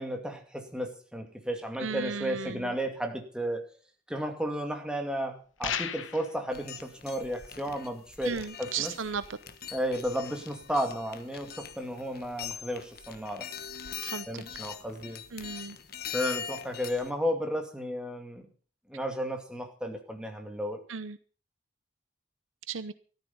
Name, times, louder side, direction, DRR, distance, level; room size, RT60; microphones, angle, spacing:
voice 1, 0.0-3.6 4.1-8.9 9.7-13.5 14.3-15.2 16.1-18.4 18.9-20.8, equal, 5° right, 2.3 m, -33 dB
voice 2, 1.8-2.7 8.2-9.2 14.0-14.4 15.3-15.8 20.9-21.2 22.7-22.9, right 6 dB, 80° right, 0.8 m, -35 dB
sound 1, 5.6-6.3, left 8 dB, 80° left, 1.2 m, -33 dB
sound 2, 6.5-17.1, left 8 dB, 50° left, 1.4 m, -42 dB
14.0 x 13.0 x 5.4 m
head